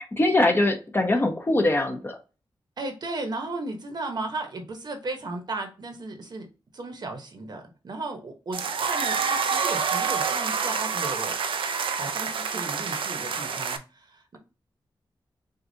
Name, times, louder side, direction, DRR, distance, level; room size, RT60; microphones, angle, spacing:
voice 1, 0.1-2.2, left 2 dB, 25° left, 5 dB, 0.7 m, -22 dB
voice 2, 2.8-6.5 6.7-11.3 11.9-14.4, right 2 dB, 55° right, 4 dB, 1.0 m, -35 dB
sound 1, 8.5-13.8, right 6 dB, 85° right, 0.5 m, -27 dB
6.4 x 2.4 x 2.7 m, 0.31 s
wide cardioid pair, 130°, 9 cm